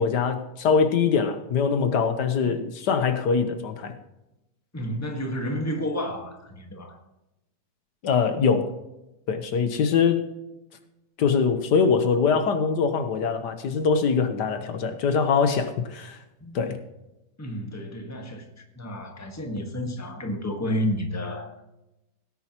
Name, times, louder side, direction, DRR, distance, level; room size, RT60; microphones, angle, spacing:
voice 1, 0.0-4.0 8.0-8.7 9.3-10.3 11.2-16.2 16.5-16.8, left 5 dB, 75° left, 1.6 m, -23 dB
voice 2, 4.7-7.0 16.4-16.6 17.4-21.6, equal, 10° left, 1.4 m, -31 dB
17.5 x 10.0 x 3.0 m
omnidirectional pair, 1.8 m